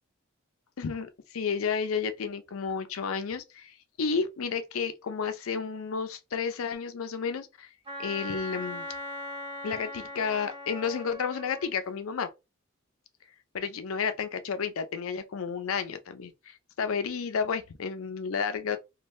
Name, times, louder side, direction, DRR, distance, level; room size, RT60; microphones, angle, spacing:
voice 1, 0.8-7.7 8.0-8.9 9.6-12.3 13.5-18.8, left 6 dB, 85° left, 0.5 m, -31 dB
Wind instrument woodwind instrument, 7.9-11.7, left 1 dB, 25° right, 0.6 m, -39 dB
2.6 x 2.2 x 3.1 m
head